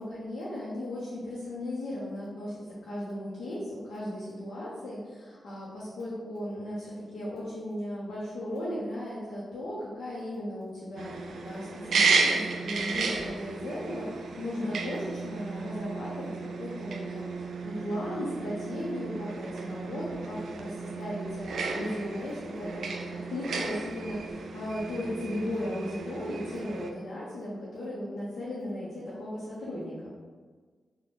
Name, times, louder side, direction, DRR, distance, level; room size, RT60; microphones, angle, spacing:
voice 1, 0.0-17.3 17.6-30.1, left 1 dB, 85° left, -8 dB, 0.8 m, -36 dB
sound 1, 11.0-26.9, right 4 dB, 80° right, 0.3 m, -33 dB
3.9 x 2.3 x 3.6 m, 1.5 s
cardioid pair, 65°, 0 cm